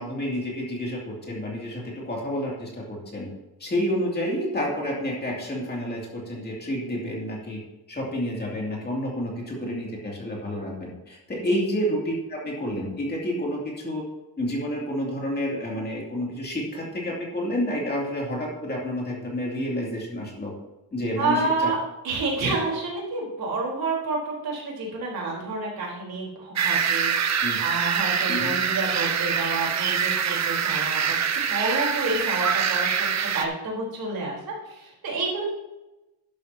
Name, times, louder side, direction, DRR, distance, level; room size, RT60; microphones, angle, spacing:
voice 1, 0.0-3.3 3.6-7.6 7.9-14.0 14.4-20.5 20.9-21.7 22.4-22.6 27.4-27.6 28.3-28.5, equal, 25° left, -2 dB, 2.5 m, -29 dB
voice 2, 21.2-31.2 31.5-35.4, right 3 dB, 55° right, -2 dB, 3.8 m, -29 dB
sound 1, 26.6-33.5, right 7 dB, 40° right, 0.8 m, -25 dB
12.0 x 11.5 x 2.8 m, 0.99 s
cardioid pair, 175°, 42 cm